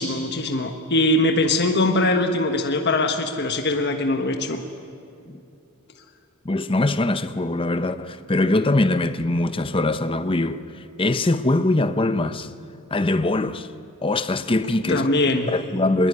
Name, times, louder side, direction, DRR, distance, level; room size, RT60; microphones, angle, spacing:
voice 1, 0.0-4.6 14.9-15.5, left 2 dB, 50° left, 1.4 m, -22 dB
voice 2, 6.4-10.6 11.0-12.5 12.9-13.7 14.0-16.1, left 2 dB, 25° left, 0.7 m, -22 dB
21.0 x 20.5 x 9.5 m
head